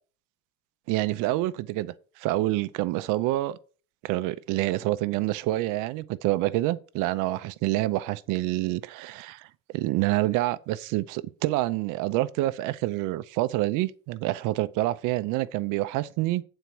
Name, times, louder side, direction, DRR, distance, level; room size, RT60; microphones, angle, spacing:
voice 1, 0.9-3.6 4.0-9.5 9.7-16.4, right 17 dB, 85° right, 0.7 m, -27 dB
8.2 x 4.4 x 6.1 m
cardioid pair, 150°, 30 cm